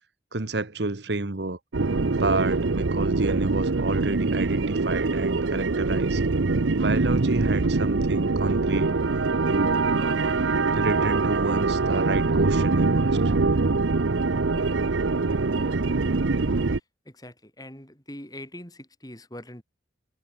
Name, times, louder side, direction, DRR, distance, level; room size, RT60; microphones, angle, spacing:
voice 1, 0.3-1.6 2.2-6.2 6.8-8.9 9.5-10.4 10.7-13.2, right 2 dB, 65° right, 1.2 m, -30 dB
sound 1, 1.7-16.8, right 3 dB, 85° right, 0.8 m, -24 dB
voice 2, 16.7-19.6, left 1 dB, 20° left, 7.6 m, -43 dB
head